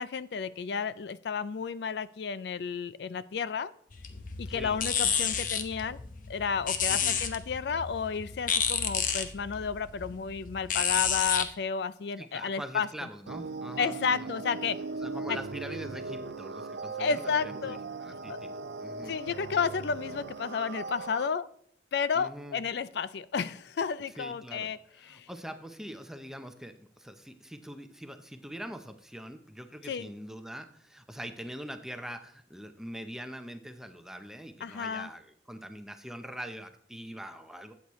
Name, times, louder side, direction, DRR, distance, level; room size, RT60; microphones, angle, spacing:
voice 1, 0.0-3.7 4.4-6.0 6.3-12.9 13.8-14.8 15.3-15.4 17.0-17.8 18.3-18.4 19.1-21.5 21.9-24.8 25.1-25.3 29.8-30.1 34.6-35.1, left 6 dB, 65° left, 16 dB, 0.4 m, -32 dB
sound 1, 3.9-11.5, left 7 dB, 45° left, 0.8 m, -31 dB
voice 2, 6.9-7.2 12.2-14.3 15.0-18.5 18.8-19.1 22.1-22.6 24.2-24.7 25.0-37.7, equal, 5° right, 7 dB, 0.6 m, -43 dB
sound 2, 13.3-21.3, right 3 dB, 70° right, 0.4 m, -39 dB
12.5 x 8.4 x 3.1 m, 0.62 s
head